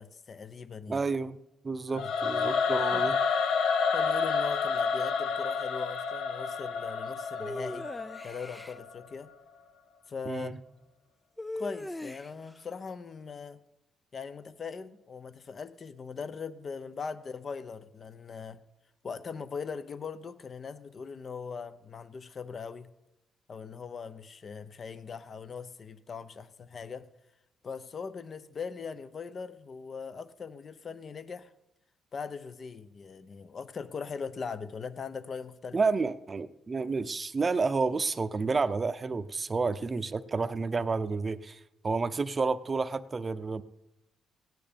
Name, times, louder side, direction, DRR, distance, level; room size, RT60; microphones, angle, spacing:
voice 1, 0.0-1.0 1.9-2.1 2.9-3.1 3.9-7.9 8.2-9.3 10.1-10.6 11.6-13.6 14.1-18.6 19.0-22.9 23.5-27.1 27.6-31.5 32.1-35.8, left 5 dB, 45° left, 13 dB, 0.8 m, -40 dB
voice 2, 0.9-1.4 1.6-3.2 10.3-10.5 35.7-43.6, right 4 dB, 30° right, 12 dB, 0.7 m, -30 dB
Singing / Musical instrument, 1.9-9.0, left 5 dB, 75° left, 0.9 m, -29 dB
sound 1, 7.4-8.8 11.4-12.5, left 1 dB, 10° left, 0.4 m, -39 dB
16.5 x 9.4 x 5.2 m, 0.90 s
cardioid pair, 90°, 0 cm